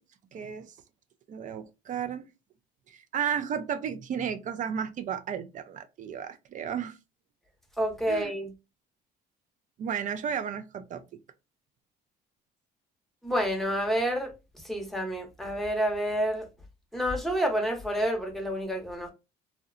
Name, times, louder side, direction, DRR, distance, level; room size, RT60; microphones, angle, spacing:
voice 1, 0.3-0.7 1.3-2.3 2.9-7.0 8.1-8.3 9.8-11.2, right 8 dB, 50° right, 0.4 m, -33 dB
voice 2, 7.8-8.5 13.2-14.3 14.6-16.5 16.9-19.1, equal, ahead, 0.7 m, -29 dB
2.7 x 2.1 x 2.4 m
cardioid pair, 110°, 17 cm